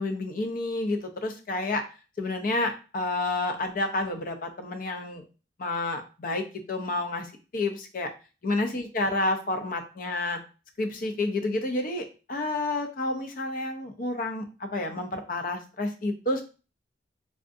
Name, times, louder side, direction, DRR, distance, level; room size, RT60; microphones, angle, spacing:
voice 1, 0.0-1.8 2.2-5.2 5.6-8.1 8.4-10.4 10.8-16.4, left 2 dB, 45° left, 6 dB, 0.5 m, -30 dB
3.5 x 2.4 x 2.5 m, 0.33 s
head